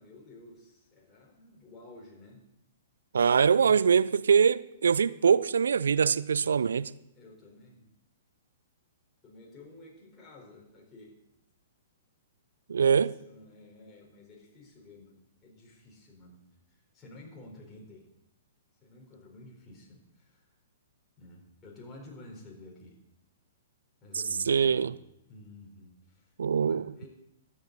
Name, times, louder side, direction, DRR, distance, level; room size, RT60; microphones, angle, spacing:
voice 1, 0.0-2.4 3.6-3.9 7.1-7.9 9.2-11.2 12.7-16.4 16.7-18.1 18.8-20.5 21.2-23.0 24.0-24.9 25.3-26.3 26.6-27.1, left 2 dB, 20° left, 4.1 m, -52 dB
voice 2, 3.1-6.9 12.7-13.1 24.5-24.9 26.4-26.9, right 6 dB, 65° right, 0.4 m, -23 dB
22.0 x 8.0 x 4.0 m
figure-of-eight pair, 110°, 0 cm